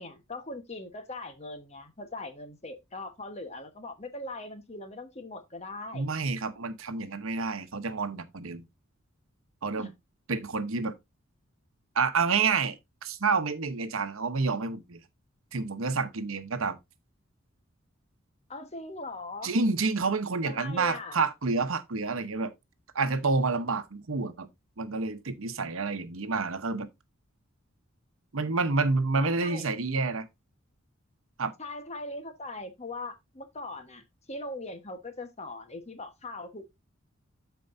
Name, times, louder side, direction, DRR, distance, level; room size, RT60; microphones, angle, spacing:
voice 1, 0.0-6.0 9.8-9.9 18.5-19.5 20.4-21.2 29.2-29.6 31.6-36.7, left 2 dB, 30° left, 1.2 m, -40 dB
voice 2, 5.9-8.7 9.6-9.9 10.3-10.9 11.9-15.0 15.5-16.8 19.4-22.5 22.9-24.5 24.8-26.9 28.3-30.3 31.4-31.5, right 4 dB, 80° right, 0.9 m, -29 dB
13.5 x 4.6 x 2.6 m
head